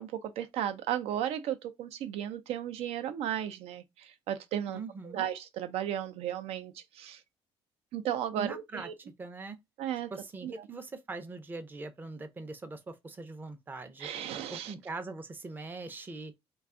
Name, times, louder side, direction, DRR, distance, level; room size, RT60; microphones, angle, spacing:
voice 1, 0.0-7.2 7.9-8.9 9.8-10.1 10.4-10.5 14.0-14.7, right 10 dB, 75° right, 0.5 m, -35 dB
voice 2, 4.7-5.3 8.4-9.6 10.1-14.1 14.5-16.3, right 3 dB, 20° right, 0.5 m, -42 dB
2.5 x 2.3 x 3.5 m
cardioid pair, 120°, 10 cm